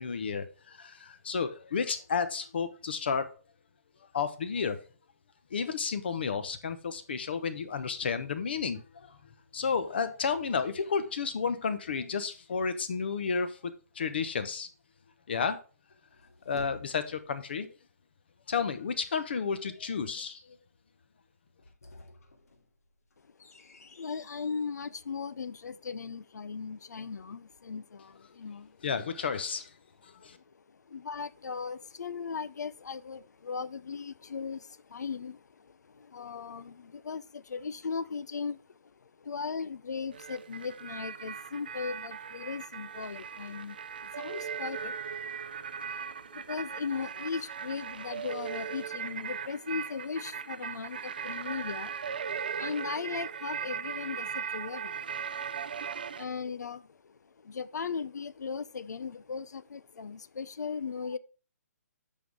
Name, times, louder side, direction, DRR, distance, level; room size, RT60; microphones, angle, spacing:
voice 1, 0.0-3.3 4.1-4.8 5.5-9.2 9.5-14.7 15.3-15.6 16.5-17.7 18.5-20.6 28.8-29.7 30.0-30.4, left 5 dB, 40° left, 0.9 m, -32 dB
sound 1, 15.9-17.4 21.5-24.7, left 2 dB, 65° left, 1.8 m, -51 dB
voice 2, 23.2-28.8 30.3-51.9 52.5-55.2 55.5-61.2, left 5 dB, 85° left, 0.7 m, -38 dB
sound 2, 40.1-56.3, right 7 dB, 30° right, 0.3 m, -38 dB
8.5 x 5.6 x 4.7 m
hypercardioid pair, 180°, 9 cm